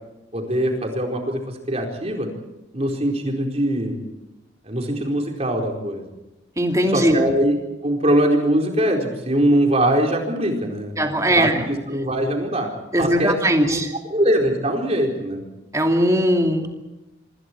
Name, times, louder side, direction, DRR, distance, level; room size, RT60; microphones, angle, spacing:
voice 1, 0.3-2.3 2.7-4.0 4.6-6.1 6.9-7.6 7.8-10.9 11.3-12.7 13.0-13.8 14.0-15.4, right 1 dB, 35° right, 1 dB, 4.5 m, -22 dB
voice 2, 6.6-7.2 11.0-11.7 12.9-13.9 15.7-16.7, equal, 15° right, 2 dB, 2.7 m, -19 dB
26.0 x 26.0 x 4.7 m, 0.97 s
head